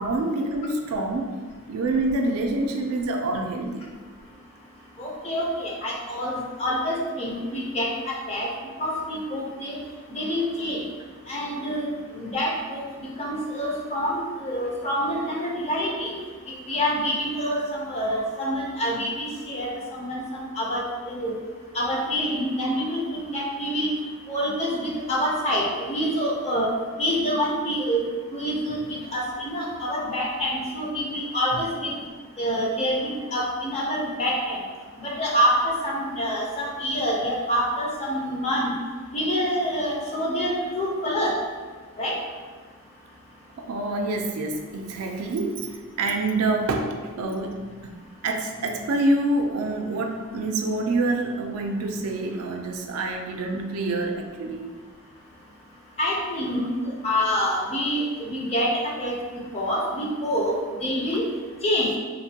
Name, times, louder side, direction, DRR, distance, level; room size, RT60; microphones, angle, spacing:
voice 1, 0.0-1.4 1.7-3.9 31.5-31.6 43.6-48.0 48.2-54.7, right 2 dB, 75° right, 3 dB, 0.3 m, -27 dB
voice 2, 5.0-8.5 8.8-9.8 10.1-10.8 11.3-12.8 13.2-16.1 16.7-21.3 21.7-23.9 24.3-26.7 27.0-28.0 28.3-31.9 32.4-34.6 35.0-38.7 39.1-41.4 42.0-42.2 56.0-58.7 59.0-59.2 59.5-61.2 61.6-61.9, equal, 30° left, -3 dB, 0.5 m, -26 dB
3.1 x 2.1 x 2.7 m, 1.5 s
head